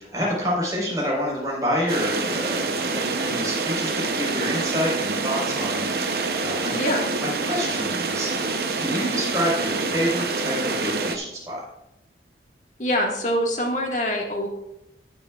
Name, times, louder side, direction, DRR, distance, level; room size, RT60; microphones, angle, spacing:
voice 1, 0.0-6.7 7.2-8.3 8.8-11.7, equal, 20° right, -4 dB, 4.1 m, -28 dB
sound 1, 1.9-11.2, right 3 dB, 60° right, 0.7 m, -26 dB
voice 2, 6.7-7.0 12.8-14.5, equal, 45° left, 0 dB, 1.7 m, -24 dB
19.0 x 7.0 x 2.4 m, 0.87 s
head